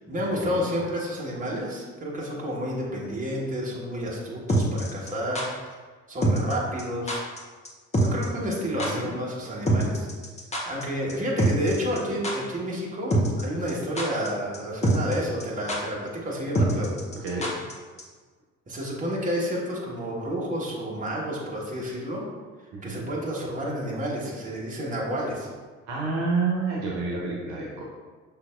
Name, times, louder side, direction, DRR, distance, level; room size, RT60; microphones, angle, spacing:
voice 1, 0.0-5.5 6.1-7.2 8.0-10.1 10.6-16.9 18.7-22.3 22.8-25.5, equal, 20° right, -4 dB, 1.2 m, -30 dB
sound 1, 4.5-5.5 6.2-6.5 6.8-6.9 7.1-7.4 7.6-7.7 7.9-8.3 8.5-8.6 8.8-8.9 9.7-10.8 11.1-11.2 11.4-12.0 12.2-12.3 13.1-13.4 13.7-14.3 14.5-14.6 14.8-15.1 15.4-15.5 15.7-15.8 16.5-17.7 18.0-18.1, right 1 dB, 20° left, 0.8 m, -24 dB
voice 2, 8.7-9.2 17.2-17.4 22.7-23.2 25.9-27.8, right 4 dB, 60° right, -3 dB, 1.0 m, -29 dB
5.7 x 3.3 x 2.5 m, 1.4 s
figure-of-eight pair, 50°, 38 cm